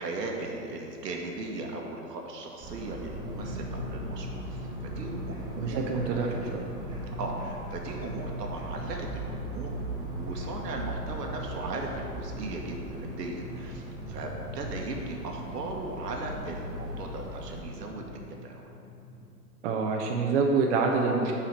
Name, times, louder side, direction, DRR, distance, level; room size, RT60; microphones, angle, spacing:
voice 1, 0.0-6.3 7.2-18.0 18.4-18.7, right 2 dB, 80° right, 1 dB, 1.4 m, -37 dB
sound 1, 2.6-17.6, right 1 dB, 10° right, 0.6 m, -39 dB
Drum, 3.1-19.3, left 1 dB, 20° left, 1.0 m, -42 dB
voice 2, 5.6-6.3 6.5-6.6 19.6-21.3, right 4 dB, 50° right, 1 dB, 0.8 m, -26 dB
5.8 x 4.9 x 5.9 m, 2.6 s
hypercardioid pair, 135°, 48 cm